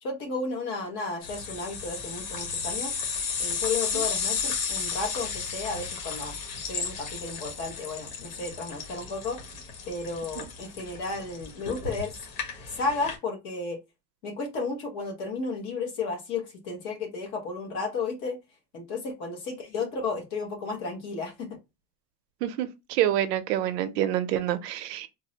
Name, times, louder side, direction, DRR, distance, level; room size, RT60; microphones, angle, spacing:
voice 1, 0.0-2.9 3.4-6.4 6.7-9.4 9.9-12.2 12.6-13.8 14.2-18.4 18.7-21.6, left 3 dB, 30° left, 0.7 m, -33 dB
sound 1, 1.2-13.2, left 5 dB, 65° left, 1.5 m, -34 dB
voice 2, 22.4-25.1, right 12 dB, 90° right, 0.7 m, -27 dB
3.8 x 2.0 x 2.7 m
supercardioid pair, 170°, 46 cm